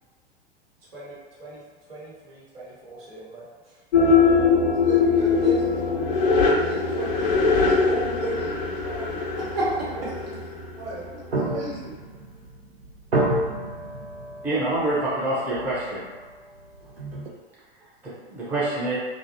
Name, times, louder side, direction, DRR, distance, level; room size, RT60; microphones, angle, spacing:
voice 1, 0.9-1.6 1.9-3.4 9.4-9.7 11.4-11.5, right 1 dB, 70° right, -8 dB, 1.0 m, -34 dB
sound 1, 3.9-11.3, left 4 dB, 50° left, 0.5 m, -22 dB
voice 2, 4.8-9.2 9.9-10.4 10.8-12.0, right 2 dB, 45° right, -6 dB, 1.1 m, -36 dB
sound 2, 9.4-17.3, right 1 dB, 90° right, 0.5 m, -31 dB
voice 3, 14.4-16.0 18.0-19.0, right 1 dB, 5° right, -9 dB, 0.5 m, -26 dB
2.5 x 2.1 x 2.5 m, 1.3 s
figure-of-eight pair, 90°, 30 cm